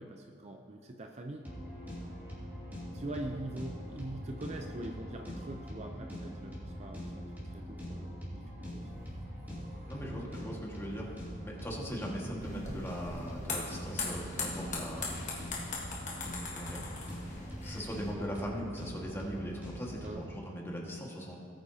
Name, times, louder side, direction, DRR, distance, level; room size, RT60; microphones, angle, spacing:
voice 1, 0.0-1.5 2.9-8.4 8.7-8.8 20.0-20.3, right 1 dB, 35° right, 3 dB, 0.5 m, -43 dB
sound 1, 1.4-20.1, equal, 10° right, 2.8 m, -43 dB
sound 2, 8.7-10.2 10.6-14.9, right 1 dB, 65° right, 2.0 m, -52 dB
voice 2, 9.9-15.3 16.6-16.8 17.6-21.4, equal, 10° left, -2 dB, 1.7 m, -40 dB
sound 3, 12.4-18.1, left 3 dB, 35° left, 1.5 m, -40 dB
18.5 x 9.0 x 2.8 m, 2.5 s
head